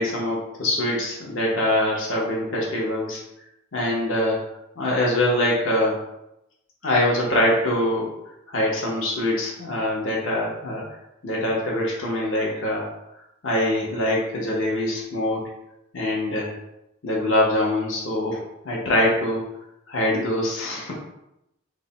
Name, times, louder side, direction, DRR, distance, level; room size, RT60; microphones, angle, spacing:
voice 1, 0.0-3.2 3.7-4.4 4.8-6.0 6.8-8.1 8.5-10.8 11.2-12.8 13.4-15.5 15.9-16.5 17.0-19.4 19.9-20.9, left 1 dB, 70° left, -3 dB, 0.9 m, -23 dB
3.2 x 2.1 x 3.9 m, 0.85 s
head